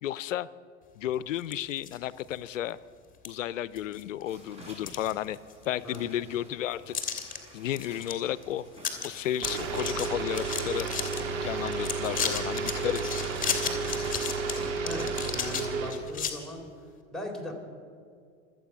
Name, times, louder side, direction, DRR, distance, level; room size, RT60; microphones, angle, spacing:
voice 1, 0.0-0.5 1.0-2.8 3.2-5.4 5.7-6.9 7.5-8.7 9.0-10.9 11.4-13.1, left 12 dB, 85° left, 19 dB, 0.6 m, -33 dB
sound 1, 1.4-2.0 2.5-2.6 3.2-3.3 3.8-4.2 4.6-5.6 5.9-6.0 6.9-7.4 7.7-8.1 8.4-8.5 8.8-9.1 9.3-11.2 11.7-16.3, left 7 dB, 20° left, 2.4 m, -34 dB
sound 2, 4.3-16.3, equal, 15° right, 5.3 m, -52 dB
sound 3, 9.4-15.9, right 4 dB, 45° right, 2.5 m, -32 dB
voice 2, 14.8-16.6 17.1-17.5, left 1 dB, ahead, -1 dB, 3.9 m, -39 dB
25.5 x 9.0 x 6.1 m, 2.2 s
hypercardioid pair, 95°, 37 cm